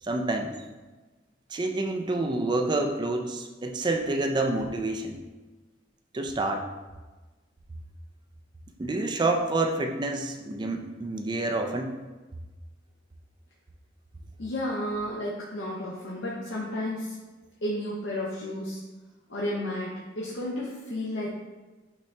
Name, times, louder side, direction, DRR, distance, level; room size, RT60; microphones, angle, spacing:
voice 1, 0.0-0.5 1.5-5.2 6.1-6.7 8.8-12.0, right 2 dB, 25° right, 3 dB, 0.3 m, -28 dB
voice 2, 14.4-17.1 17.6-18.8 19.3-21.3, left 1 dB, 65° left, -5 dB, 0.7 m, -32 dB
5.9 x 2.8 x 3.2 m, 1.2 s
head